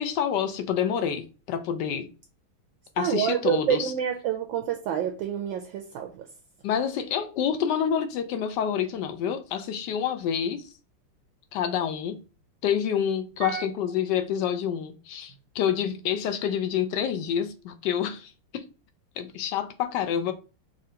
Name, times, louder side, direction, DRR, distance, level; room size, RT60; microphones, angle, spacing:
voice 1, 0.0-2.1 3.0-3.9 6.6-10.7 11.5-12.2 12.6-18.7 19.2-20.3, left 8 dB, 80° left, 0.9 m, -28 dB
voice 2, 3.0-6.1 13.4-13.6, right 9 dB, 75° right, 1.2 m, -27 dB
5.6 x 2.5 x 2.8 m
omnidirectional pair, 2.4 m